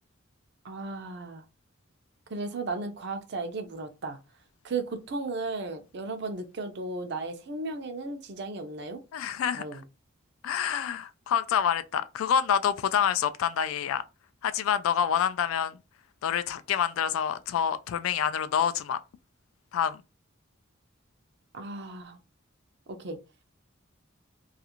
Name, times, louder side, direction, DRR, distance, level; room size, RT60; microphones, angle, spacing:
voice 1, 0.6-1.4 2.3-4.2 4.6-9.0 9.5-9.8 21.5-22.2 22.9-23.2, right 3 dB, 55° right, 0.5 m, -35 dB
voice 2, 9.1-9.8 10.4-14.0 14.4-15.8 16.2-19.0 19.7-20.0, left 8 dB, 80° left, 0.3 m, -27 dB
2.4 x 2.4 x 2.8 m
head